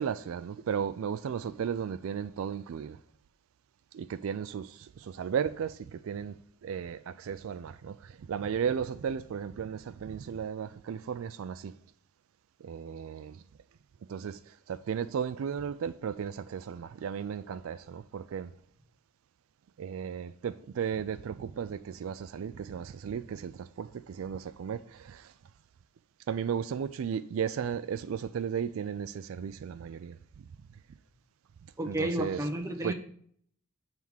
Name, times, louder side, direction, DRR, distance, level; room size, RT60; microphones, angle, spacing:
voice 1, 0.0-3.0 3.9-11.7 12.6-13.4 14.1-14.4 14.7-18.5 19.8-25.3 26.3-30.2 31.8-32.4 32.8-32.9, right 7 dB, 65° right, 0.3 m, -35 dB
voice 2, 31.8-32.9, right 1 dB, 15° right, 0.8 m, -31 dB
7.4 x 3.5 x 6.2 m
head